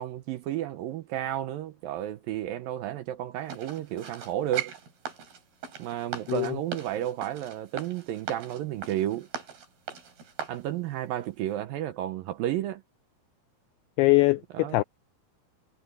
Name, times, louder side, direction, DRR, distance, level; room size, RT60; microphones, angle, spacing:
voice 1, 0.0-4.7 5.8-9.3 10.5-12.8 14.5-14.8, right 12 dB, 80° right, 2.1 m, -32 dB
sound 1, 3.5-10.6 11.2-11.3, right 7 dB, 60° right, 6.4 m, -39 dB
voice 2, 14.0-14.8, left 21 dB, 90° left, 2.2 m, -22 dB
omnidirectional pair, 5.1 m